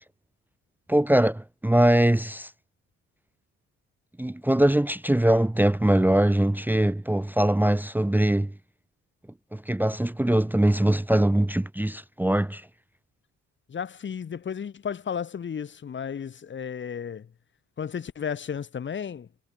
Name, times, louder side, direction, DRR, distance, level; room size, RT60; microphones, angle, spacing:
voice 1, 0.9-2.5 4.2-8.5 9.5-12.7, right 1 dB, 5° right, 1.0 m, -22 dB
voice 2, 13.7-17.3 17.8-19.3, left 7 dB, 40° left, 1.2 m, -33 dB
cardioid pair, 90°, 30 cm